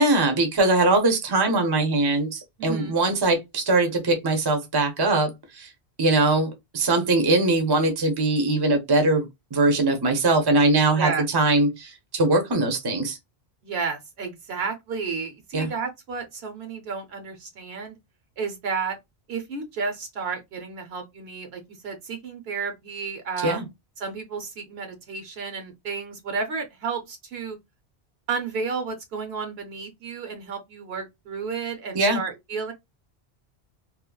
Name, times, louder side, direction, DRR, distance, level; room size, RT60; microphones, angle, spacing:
voice 1, 0.0-5.7 6.0-13.2 15.5-15.7 23.4-23.6 31.9-32.2, right 2 dB, 25° right, 0.6 m, -21 dB
voice 2, 2.6-3.0 11.0-11.2 13.6-18.0 18.4-19.0 19.3-23.6 24.0-27.6 28.3-32.7, right 5 dB, 75° right, 0.9 m, -32 dB
3.0 x 2.0 x 2.2 m
omnidirectional pair, 1.1 m